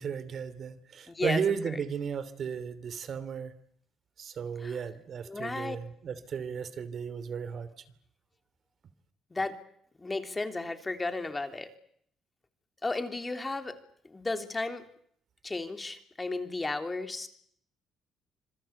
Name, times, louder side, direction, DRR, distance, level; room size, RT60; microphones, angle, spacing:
voice 1, 0.0-3.5 4.2-7.7, right 7 dB, 55° right, 14 dB, 2.9 m, -34 dB
voice 2, 1.1-1.8 4.6-4.8 5.3-5.8 9.3-9.6 10.0-11.7 12.8-13.8 14.0-14.8 15.4-17.3, left 3 dB, 20° left, 7 dB, 3.3 m, -34 dB
26.5 x 20.5 x 8.3 m, 0.66 s
cardioid pair, 80°, 0 cm